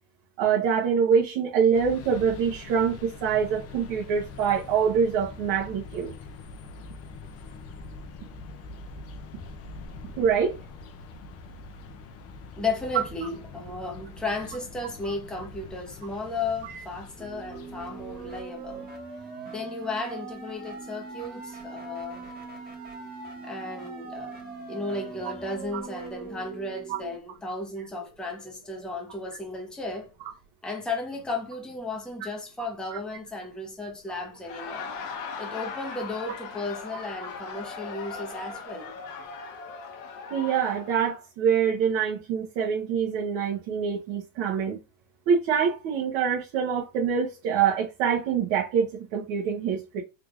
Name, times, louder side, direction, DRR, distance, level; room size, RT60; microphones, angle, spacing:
voice 1, 0.4-6.1 10.2-10.6 16.6-16.8 26.9-27.0 32.9-33.0 40.3-44.8 45.3-50.0, right 7 dB, 60° right, 1.1 m, -25 dB
sound 1, 1.7-18.4, left 3 dB, 30° left, 0.5 m, -44 dB
voice 2, 12.6-18.9 19.5-22.3 23.4-24.4 24.7-30.1 30.6-34.9 35.4-38.9, left 3 dB, ahead, 0.8 m, -34 dB
sound 2, 17.2-27.2, right 4 dB, 20° right, 1.3 m, -41 dB
Laughter, 34.3-41.2, left 5 dB, 75° left, 1.1 m, -39 dB
3.7 x 3.1 x 2.4 m
supercardioid pair, 140°, 49 cm